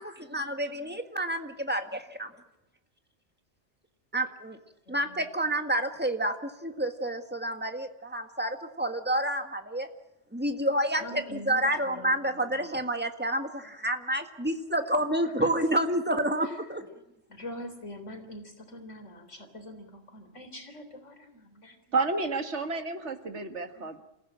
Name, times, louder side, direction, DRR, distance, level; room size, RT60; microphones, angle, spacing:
voice 1, 0.0-2.3 4.1-4.6 4.9-9.9 10.3-16.9, right 1 dB, 10° right, 6 dB, 1.7 m, -29 dB
voice 2, 4.9-5.3 10.9-12.6 15.2-15.5 16.4-16.6 17.3-21.8 23.7-24.0, left 1 dB, 85° left, 6 dB, 4.0 m, -44 dB
voice 3, 21.9-24.0, right 3 dB, 70° right, 7 dB, 2.0 m, -30 dB
28.0 x 15.5 x 8.7 m, 0.88 s
omnidirectional pair, 1.2 m